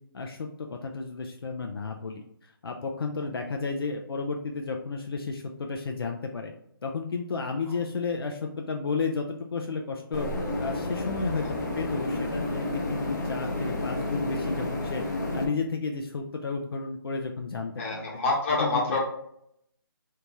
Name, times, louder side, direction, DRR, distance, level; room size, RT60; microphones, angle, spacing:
voice 1, 0.1-6.5 6.8-10.3 10.6-15.0 15.3-18.0 18.6-18.8, left 4 dB, 75° left, 2 dB, 0.5 m, -32 dB
sound 1, 10.1-15.5, left 1 dB, 45° left, 0.8 m, -31 dB
voice 2, 17.8-19.0, left 3 dB, 30° left, -3 dB, 1.2 m, -27 dB
3.5 x 2.8 x 2.9 m, 0.73 s
hypercardioid pair, 160°, 13 cm